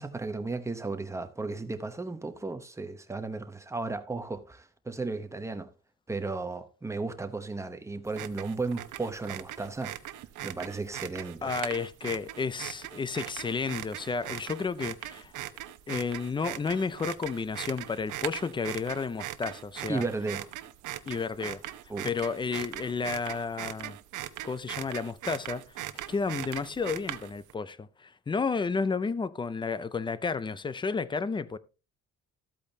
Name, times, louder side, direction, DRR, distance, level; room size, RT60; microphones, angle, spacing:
voice 1, 0.0-5.7 6.1-9.9 10.4-11.5 19.9-20.4 21.9-22.1, right 3 dB, 10° right, 0.8 m, -34 dB
sound 1, 8.1-27.5, right 13 dB, 85° right, 0.8 m, -40 dB
voice 2, 11.4-15.3 15.9-20.0 21.1-21.6 22.0-24.0 24.4-31.6, left 5 dB, 15° left, 0.4 m, -32 dB
13.5 x 8.4 x 2.8 m
cardioid pair, 175°, 30 cm